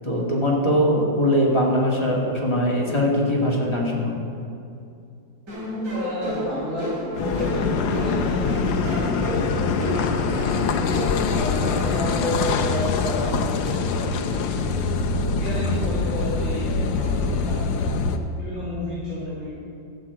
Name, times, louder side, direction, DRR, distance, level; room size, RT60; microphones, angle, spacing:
voice 1, 0.0-4.1, equal, 15° left, -3 dB, 2.1 m, -21 dB
sound 1, 5.5-11.5, equal, 65° right, 3.4 m, -31 dB
voice 2, 5.9-17.9 18.4-19.5, left 1 dB, 35° left, -9 dB, 3.0 m, -32 dB
Car passing by / Idling / Accelerating revving vroom, 7.1-18.2, left 4 dB, 80° left, 1.5 m, -24 dB
14.0 x 6.1 x 8.4 m, 2.5 s
omnidirectional pair, 2.0 m